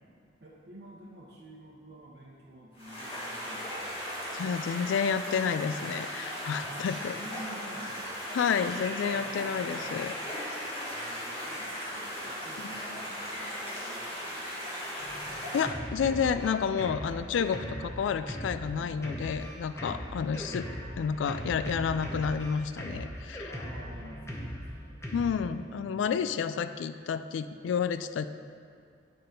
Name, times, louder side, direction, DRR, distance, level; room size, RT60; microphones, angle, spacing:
voice 1, 0.4-4.2 6.7-8.1 8.8-9.8 10.8-14.9 17.5-17.8 23.4-25.0 25.7-26.5, right 1 dB, 55° right, -7 dB, 0.8 m, -50 dB
sound 1, 2.7-15.6, equal, 30° left, 1.8 m, -37 dB
voice 2, 4.3-7.1 8.3-10.1 10.4-10.7 15.5-20.7 21.0-23.5 25.1-28.3, left 6 dB, 80° left, 12 dB, 0.3 m, -30 dB
Drum kit, 15.0-25.3, equal, 15° left, 0.7 m, -39 dB
8.9 x 3.8 x 5.2 m, 2.2 s
head